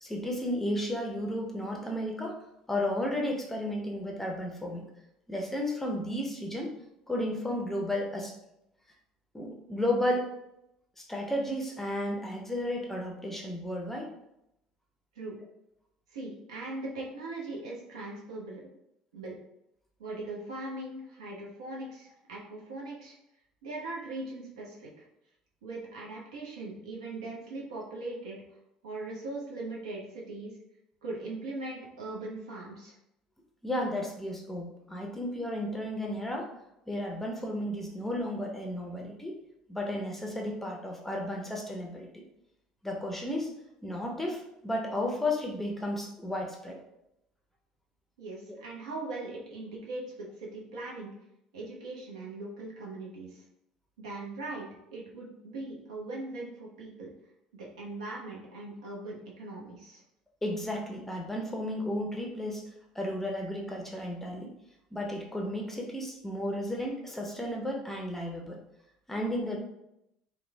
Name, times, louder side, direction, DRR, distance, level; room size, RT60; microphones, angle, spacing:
voice 1, 0.0-2.3 2.7-4.8 5.3-6.7 7.1-8.3 9.3-10.3 11.0-14.1 33.6-36.5 36.9-39.4 39.7-42.1 42.8-43.5 43.8-46.8 60.4-62.6 62.9-64.5 64.9-68.6 69.1-69.6, left 1 dB, 10° left, 0 dB, 0.5 m, -33 dB
voice 2, 16.1-18.7 19.1-19.4 20.0-23.2 23.6-25.1 25.6-28.4 28.8-30.6 31.0-33.0 48.2-51.1 51.5-53.4 54.0-57.1 57.5-60.0, right 2 dB, 70° right, -4 dB, 0.6 m, -40 dB
3.0 x 2.0 x 2.2 m, 0.83 s
figure-of-eight pair, 60°, 3 cm